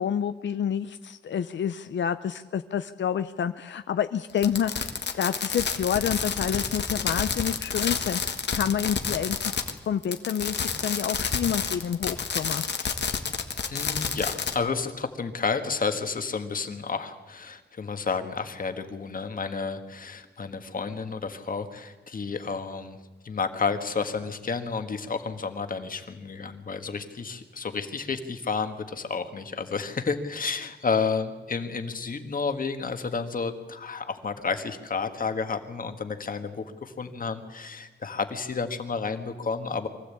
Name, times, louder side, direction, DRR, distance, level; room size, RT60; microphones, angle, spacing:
voice 1, 0.0-9.6 9.9-12.6, left 8 dB, 90° left, 11 dB, 0.6 m, -28 dB
Fireworks, 4.4-9.8 10.0-14.5, left 6 dB, 70° left, 1.6 m, -29 dB
voice 2, 13.6-23.0 23.2-39.9, left 5 dB, 50° left, 8 dB, 1.6 m, -31 dB
23.5 x 15.5 x 8.5 m, 1.2 s
wide cardioid pair, 170°, 18 cm